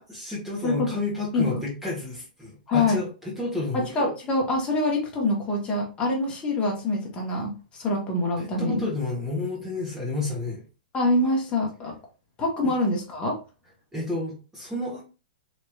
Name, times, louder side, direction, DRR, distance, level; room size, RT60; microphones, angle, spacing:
voice 1, 0.0-3.9 8.4-10.6 12.6-12.7 13.9-15.0, left 2 dB, 5° right, -4 dB, 1.3 m, -31 dB
voice 2, 0.6-0.9 1.3-1.6 2.7-3.0 3.7-8.9 10.9-11.9 12.4-13.4, left 2 dB, 20° left, -1 dB, 1.2 m, -25 dB
3.1 x 2.9 x 2.4 m, 0.33 s
hypercardioid pair, 135°, 5 cm